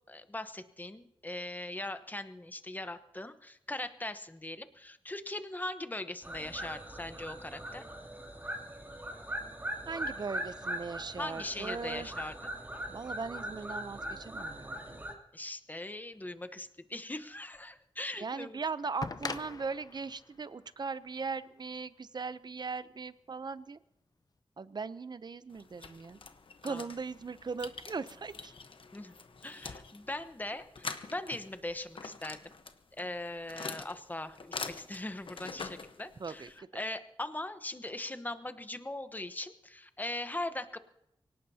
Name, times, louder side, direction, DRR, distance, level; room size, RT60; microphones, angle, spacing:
voice 1, 0.1-7.8 11.2-12.3 15.3-18.6 26.6-26.8 28.9-29.1 29.4-32.4 33.0-40.8, left 1 dB, 20° left, 10 dB, 0.9 m, -40 dB
sound 1, 6.2-15.1, right 1 dB, 20° right, 2.8 m, -40 dB
voice 2, 9.9-12.1 12.9-15.0 18.2-23.8 24.6-26.2 26.6-28.5 36.2-36.8, right 4 dB, 50° right, 14 dB, 0.6 m, -39 dB
sound 2, 17.5-17.6 19.0-21.9 23.1-23.2, left 4 dB, 40° left, 0.6 m, -42 dB
sound 3, 25.5-36.6, left 4 dB, 65° left, 1.1 m, -45 dB
24.0 x 18.0 x 2.8 m, 0.81 s
wide cardioid pair, 105°, 10 cm